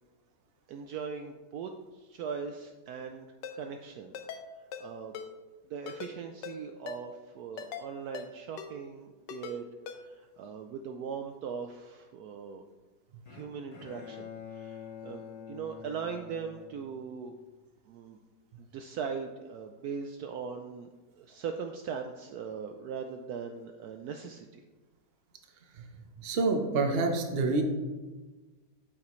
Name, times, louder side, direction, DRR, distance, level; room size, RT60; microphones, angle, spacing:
voice 1, 0.7-3.3 3.5-4.1 4.8-5.1 5.7-9.7 9.9-12.6 13.3-15.2 15.5-17.3 17.9-18.2 18.6-24.6, right 6 dB, 70° right, 5 dB, 1.0 m, -40 dB
Ringtone, 3.4-3.6 4.1-4.4 4.7-4.9 5.1-5.3 5.9-6.1 6.4-6.6 6.9-7.0 7.6-7.9 8.1-8.3 8.6-8.7 9.3-9.6 9.9-10.0, left 7 dB, 80° left, 1.4 m, -40 dB
Bowed string instrument, 13.3-17.5, left 7 dB, 65° left, 1.7 m, -47 dB
voice 2, 26.2-27.6, right 3 dB, 45° right, 4 dB, 0.9 m, -27 dB
8.7 x 7.4 x 3.1 m, 1.3 s
omnidirectional pair, 1.9 m